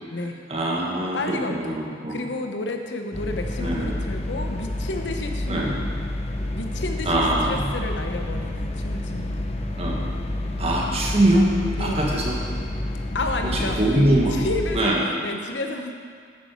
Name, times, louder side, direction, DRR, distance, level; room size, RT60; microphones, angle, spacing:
voice 1, 0.5-2.3 3.6-3.9 5.5-5.8 7.1-7.7 9.8-10.1 10.6-12.4 13.4-14.3 14.7-15.0, right 1 dB, 35° right, -3 dB, 1.7 m, -23 dB
voice 2, 1.1-1.8 2.1-5.7 6.5-9.5 11.8-12.2 13.1-13.8 14.3-15.9, left 2 dB, 85° left, 4 dB, 0.9 m, -31 dB
sound 1, 3.1-14.8, left 1 dB, 35° left, 0.8 m, -29 dB
11.0 x 8.5 x 4.6 m, 2.1 s
head